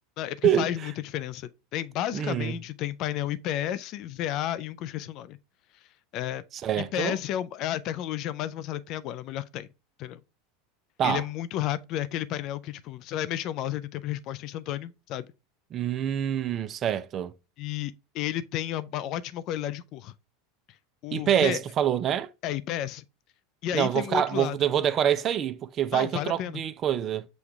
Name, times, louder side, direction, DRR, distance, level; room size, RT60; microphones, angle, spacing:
voice 1, 0.2-5.4 6.1-6.4 6.8-9.7 10.0-10.2 11.0-15.3 17.6-20.1 21.0-21.6 22.4-23.0 23.6-24.6 25.9-26.6, left 12 dB, 50° left, 0.3 m, -32 dB
voice 2, 2.1-2.6 6.5-7.2 11.0-11.2 15.7-17.3 21.1-22.3 23.7-27.3, right 10 dB, 40° right, 0.4 m, -26 dB
6.2 x 2.3 x 3.3 m
hypercardioid pair, 90°, 0 cm